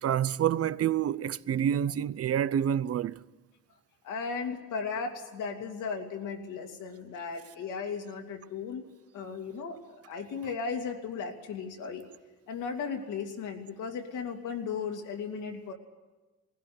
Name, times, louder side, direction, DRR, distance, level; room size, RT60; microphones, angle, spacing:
voice 1, 0.0-3.2, right 10 dB, 50° right, 0.6 m, -28 dB
voice 2, 4.0-8.8 9.1-12.1 12.5-15.7, left 5 dB, 85° left, 2.6 m, -36 dB
19.0 x 16.0 x 9.5 m
cardioid pair, 90°, 30 cm